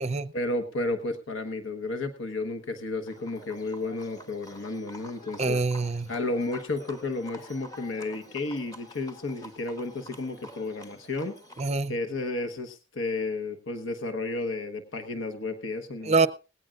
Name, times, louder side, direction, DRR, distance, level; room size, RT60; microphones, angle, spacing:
voice 1, 0.3-5.6 6.1-11.3 11.9-16.3, left 2 dB, 75° left, 1.3 m, -32 dB
Livestock farm animals working animals, 3.1-11.7, equal, 20° left, 1.3 m, -48 dB
voice 2, 5.4-6.1 11.6-11.9 16.0-16.3, right 3 dB, 35° right, 0.6 m, -25 dB
18.5 x 16.5 x 2.5 m
head